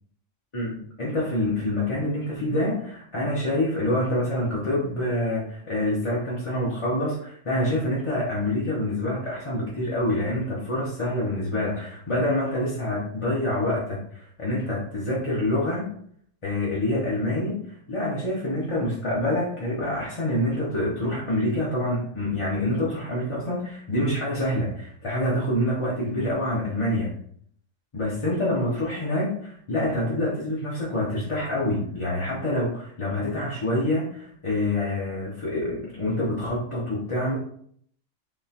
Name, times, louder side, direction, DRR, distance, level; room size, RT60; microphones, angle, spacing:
voice 1, 0.5-15.9 16.4-27.1 27.9-37.4, left 1 dB, 30° left, -6 dB, 0.7 m, -26 dB
3.8 x 2.9 x 2.8 m, 0.64 s
omnidirectional pair, 1.4 m